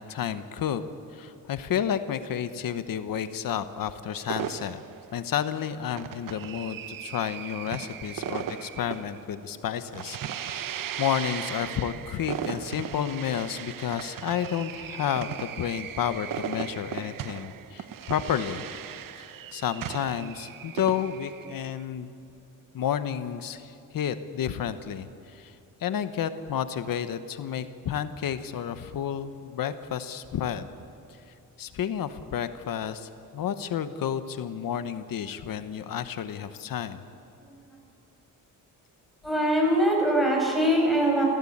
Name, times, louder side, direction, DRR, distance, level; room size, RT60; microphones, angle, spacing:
voice 1, 0.1-0.8 1.1-4.8 5.1-10.7 11.0-18.7 19.2-19.3 19.5-22.1 22.7-25.5 25.8-30.7 31.6-37.0, left 9 dB, 85° left, 11 dB, 1.1 m, -31 dB
sound 1, 4.3-21.8, right 9 dB, 75° right, 0.9 m, -37 dB
voice 2, 39.2-41.2, equal, ahead, -2 dB, 6.3 m, -23 dB
27.0 x 16.5 x 8.7 m, 2.5 s
wide cardioid pair, 140°, 33 cm